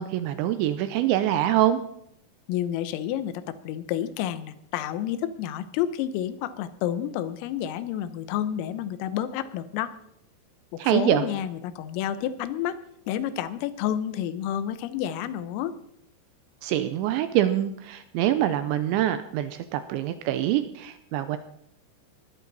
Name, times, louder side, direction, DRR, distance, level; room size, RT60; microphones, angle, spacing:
voice 1, 0.0-1.8 10.8-11.2 16.6-21.4, right 12 dB, 80° right, 11 dB, 2.8 m, -25 dB
voice 2, 2.5-9.9 10.7-12.8 13.1-15.7, left 10 dB, 90° left, 13 dB, 3.6 m, -30 dB
19.5 x 12.5 x 4.1 m, 0.73 s
omnidirectional pair, 5.8 m